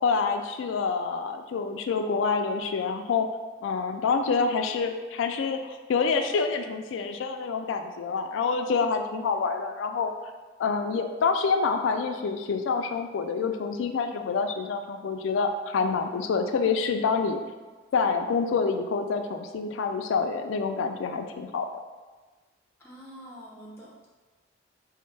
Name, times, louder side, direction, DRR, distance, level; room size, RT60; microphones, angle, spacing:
voice 1, 0.0-3.3 3.6-10.1 10.6-17.4 17.9-21.7, left 5 dB, 90° left, 6 dB, 0.3 m, -27 dB
voice 2, 22.8-24.2, equal, 15° left, -5 dB, 0.5 m, -46 dB
4.2 x 2.1 x 3.1 m, 1.3 s
head